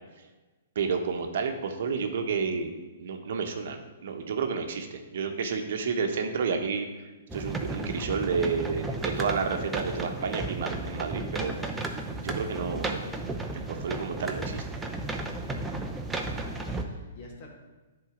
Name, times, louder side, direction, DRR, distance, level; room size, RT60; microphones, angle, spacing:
voice 1, 0.7-6.9 7.3-13.1 13.5-14.6 15.5-15.6, right 5 dB, 65° right, 5 dB, 0.9 m, -31 dB
sound 1, 7.3-16.8, right 2 dB, 5° right, 0.7 m, -34 dB
voice 2, 15.7-17.5, left 2 dB, 40° left, -1 dB, 1.9 m, -50 dB
10.0 x 3.9 x 5.0 m, 1.2 s
hypercardioid pair, 145°, 0 cm